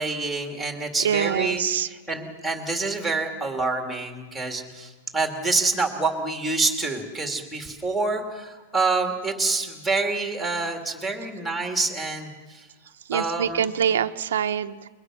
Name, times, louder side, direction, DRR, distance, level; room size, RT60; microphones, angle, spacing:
voice 1, 0.0-12.7 13.1-13.7, right 3 dB, ahead, 3 dB, 2.3 m, -27 dB
voice 2, 1.0-1.9 13.1-14.9, right 8 dB, 75° right, 8 dB, 1.0 m, -25 dB
30.0 x 22.0 x 6.2 m, 1.3 s
supercardioid pair, 180°, 0 cm